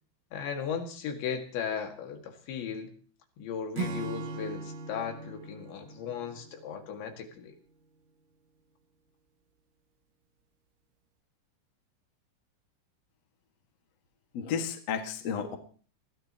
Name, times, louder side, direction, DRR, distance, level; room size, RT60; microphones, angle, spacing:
voice 1, 0.3-2.9 3.4-7.5, left 7 dB, 70° left, 4 dB, 4.2 m, -36 dB
Acoustic guitar / Strum, 3.8-7.2, right 3 dB, 80° right, 4.4 m, -39 dB
voice 2, 14.3-15.6, left 7 dB, 50° left, 4 dB, 2.1 m, -32 dB
24.5 x 16.0 x 3.0 m, 0.43 s
omnidirectional pair, 5.5 m